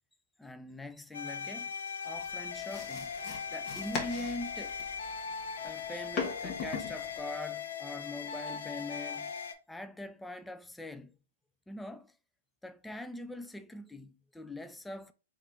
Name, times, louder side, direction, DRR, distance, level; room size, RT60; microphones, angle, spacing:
voice 1, 0.4-1.7 2.0-3.1 3.5-4.8 5.6-9.3 9.7-11.2 11.7-12.2 12.6-15.1, left 1 dB, 5° left, 0.3 m, -43 dB
sound 1, 1.1-9.5, left 6 dB, 75° left, 0.6 m, -39 dB
sound 2, 2.1-7.3, left 5 dB, 35° left, 1.1 m, -40 dB
3.3 x 2.4 x 4.2 m
hypercardioid pair, 125°, 0 cm